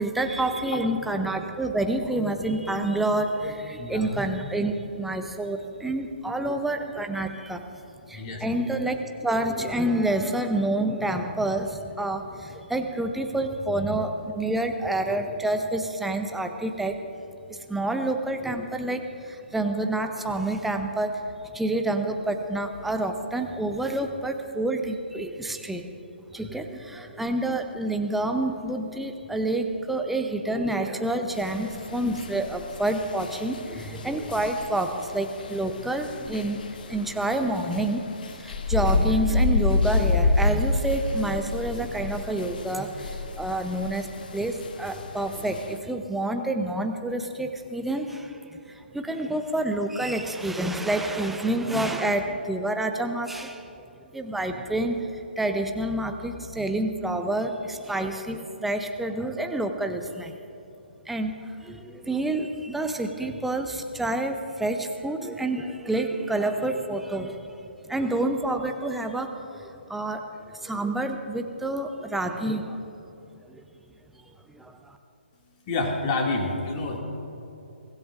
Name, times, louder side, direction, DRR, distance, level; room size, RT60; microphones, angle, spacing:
voice 1, 0.0-7.6 8.1-17.0 17.5-25.9 26.3-38.1 38.3-53.7 54.1-60.3 61.1-70.2 70.5-72.8 73.4-73.6 74.5-75.0, right 1 dB, 5° right, 5 dB, 0.7 m, -28 dB
voice 2, 3.7-4.1 8.1-8.4 75.7-77.0, left 3 dB, 30° left, 0 dB, 2.4 m, -28 dB
sound 1, 31.3-45.8, left 3 dB, 50° left, 1.1 m, -29 dB
23.5 x 15.5 x 2.6 m, 2.9 s
figure-of-eight pair, 135°, 6 cm